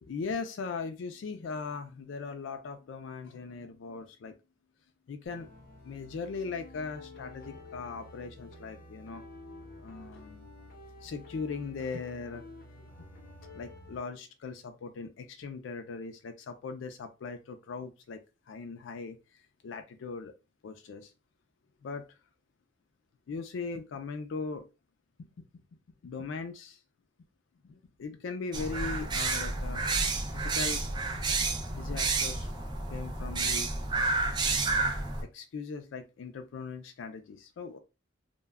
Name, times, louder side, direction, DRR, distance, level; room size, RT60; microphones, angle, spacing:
voice 1, 0.0-4.3 5.1-5.5 5.8-9.2 9.8-10.4 11.0-12.4 12.8-13.1 13.5-18.2 18.5-20.3 20.6-21.1 21.8-22.2 23.3-24.7 25.2-25.5 26.0-26.8 27.6-29.8 30.3-30.8 31.7-32.5 32.9-33.7 34.4-34.9 35.2-37.8, left 4 dB, 75° left, 7 dB, 0.4 m, -39 dB
sound 1, 5.3-14.0, left 2 dB, 50° left, 0.8 m, -50 dB
sound 2, 28.5-35.2, right 3 dB, 25° right, 0.4 m, -30 dB
2.2 x 2.1 x 3.4 m, 0.28 s
head